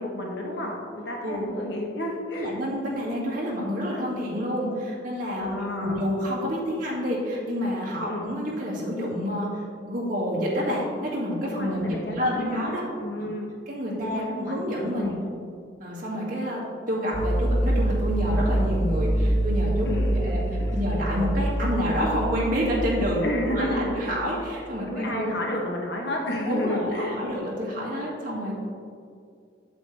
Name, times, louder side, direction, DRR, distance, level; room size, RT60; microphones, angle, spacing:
voice 1, 0.0-2.6 5.4-6.0 8.0-8.2 11.4-12.7 13.0-13.5 14.0-14.6 15.0-15.2 19.8-20.7 23.2-24.2 24.9-27.2, left 1 dB, 70° left, -1 dB, 1.1 m, -31 dB
voice 2, 2.3-12.8 13.7-15.2 15.8-20.4 20.7-25.4 26.5-28.7, equal, 50° right, -5 dB, 2.1 m, -28 dB
sound 1, 17.1-24.5, right 1 dB, 35° left, 1.3 m, -26 dB
8.2 x 8.1 x 3.3 m, 2.3 s
head